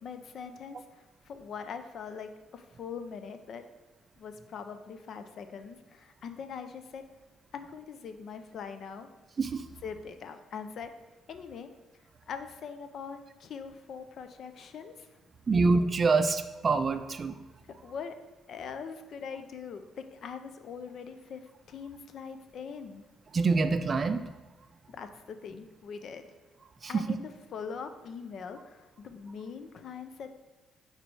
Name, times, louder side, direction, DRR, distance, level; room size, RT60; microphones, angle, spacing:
voice 1, 0.0-3.6 4.2-7.0 7.5-9.1 9.8-10.9 11.3-11.7 12.3-15.2 17.6-18.2 18.5-23.0 24.9-26.3 26.9-30.3, left 6 dB, 60° left, 8 dB, 0.5 m, -42 dB
voice 2, 15.5-17.3 23.3-24.2 26.8-27.0, right 4 dB, 40° right, 10 dB, 0.4 m, -25 dB
5.1 x 4.1 x 4.7 m, 1.1 s
cardioid pair, 90°, 0 cm